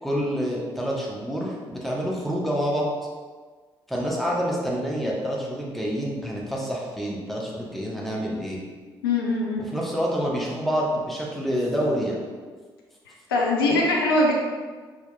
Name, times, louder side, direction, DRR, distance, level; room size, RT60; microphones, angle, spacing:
voice 1, 0.0-2.9 3.9-8.6 9.7-12.2, equal, ahead, -4 dB, 0.9 m, -27 dB
voice 2, 9.0-9.7 13.3-14.3, left 2 dB, 80° left, -2 dB, 0.4 m, -22 dB
4.4 x 2.8 x 2.3 m, 1.5 s
figure-of-eight pair, 40°, 12 cm